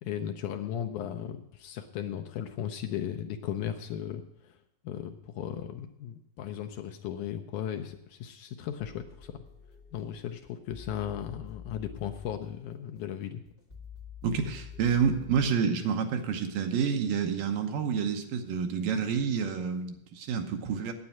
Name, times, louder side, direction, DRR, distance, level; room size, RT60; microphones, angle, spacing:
voice 1, 0.0-4.6 4.9-9.4 9.9-13.4, left 10 dB, 75° left, 6 dB, 1.9 m, -36 dB
sound 1, 8.8-15.5, left 8 dB, 60° left, 0.5 m, -48 dB
voice 2, 14.2-20.9, right 6 dB, 80° right, 5 dB, 2.7 m, -28 dB
9.6 x 9.0 x 7.1 m, 0.79 s
omnidirectional pair, 4.0 m